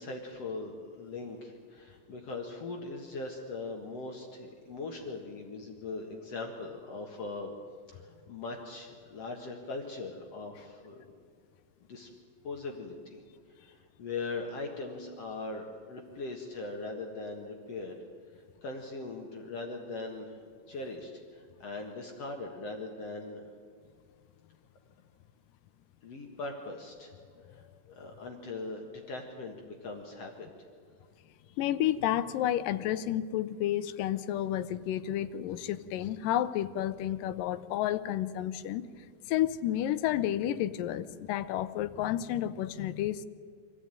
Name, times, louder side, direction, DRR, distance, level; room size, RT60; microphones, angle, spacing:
voice 1, 0.0-7.5 7.9-11.2 11.8-12.1 12.4-13.2 13.6-18.0 18.3-23.4 26.0-27.1 27.5-27.7 27.9-30.5, left 3 dB, 55° left, 2 dB, 2.5 m, -40 dB
voice 2, 31.6-38.8 39.3-43.3, left 12 dB, 85° left, 13 dB, 2.4 m, -31 dB
25.0 x 15.0 x 9.1 m, 2.2 s
omnidirectional pair, 3.9 m